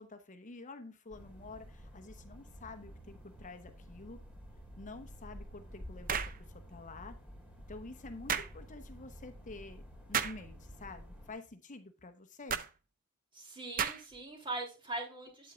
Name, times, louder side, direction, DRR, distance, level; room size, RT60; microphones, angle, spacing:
voice 1, 0.0-4.2 4.8-6.2 6.5-7.1 7.7-12.6, left 3 dB, 35° left, 8 dB, 0.9 m, -49 dB
sound 1, 1.1-11.3, equal, 5° right, 2.9 m, -50 dB
sound 2, 6.1-6.4 8.3-8.5 10.1-10.4 12.5-12.7 13.8-14.2, right 7 dB, 40° right, 0.6 m, -33 dB
voice 2, 13.3-15.5, right 2 dB, 25° right, 1 dB, 3.0 m, -41 dB
8.9 x 8.2 x 2.4 m, 0.30 s
head